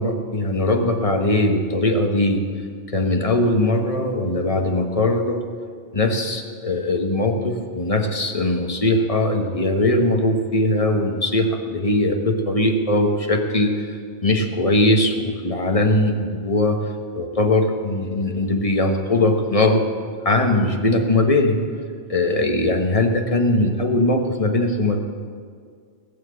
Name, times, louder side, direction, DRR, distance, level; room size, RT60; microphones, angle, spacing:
voice 1, 0.0-2.5 2.9-5.4 5.9-16.8 17.1-19.8 20.2-21.6 22.1-25.0, left 2 dB, 30° left, 4 dB, 1.3 m, -20 dB
19.0 x 7.6 x 8.2 m, 2.1 s
omnidirectional pair, 1.2 m